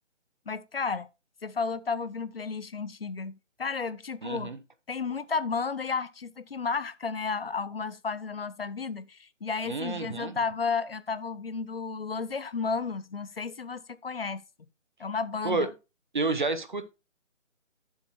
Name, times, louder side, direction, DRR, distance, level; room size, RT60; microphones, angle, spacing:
voice 1, 0.5-1.1 1.4-4.5 4.9-14.4 15.0-15.7, left 5 dB, 50° left, 0.6 m, -32 dB
voice 2, 4.2-4.6 9.7-10.4 15.4-15.7 16.1-16.9, right 3 dB, 40° right, 0.7 m, -29 dB
9.2 x 7.2 x 2.7 m
figure-of-eight pair, 165°, 37 cm